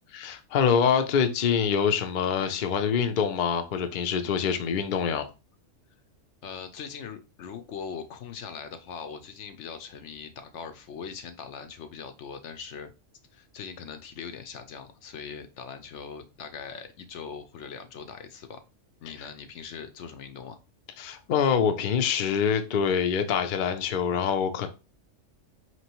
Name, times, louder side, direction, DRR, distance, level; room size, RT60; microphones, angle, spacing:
voice 1, 0.1-5.3 21.0-24.7, left 7 dB, 55° left, 0.6 m, -25 dB
voice 2, 6.4-12.9 13.3-18.6 19.0-20.6, left 6 dB, 75° left, 0.9 m, -41 dB
4.5 x 3.0 x 2.9 m
omnidirectional pair, 1.3 m